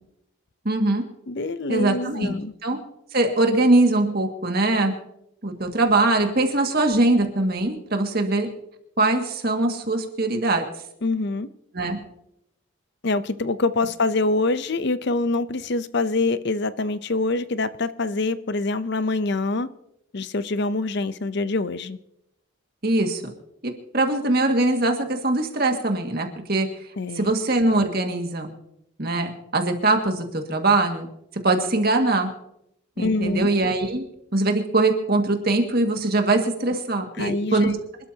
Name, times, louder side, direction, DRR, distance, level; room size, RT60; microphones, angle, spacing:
voice 1, 0.7-1.0 1.7-2.3 2.6-2.8 3.1-4.9 5.4-8.5 9.0-10.7 11.7-12.0 22.8-23.3 23.6-26.7 27.1-28.5 29.0-31.1 31.4-32.3 33.0-34.0 34.3-37.7, right 2 dB, 45° right, 2.0 m, -22 dB
voice 2, 1.3-2.5 11.0-11.5 13.0-19.7 20.1-22.0 27.0-27.3 33.0-33.5 37.2-37.7, left 3 dB, 55° left, 0.6 m, -25 dB
27.0 x 12.5 x 2.8 m
head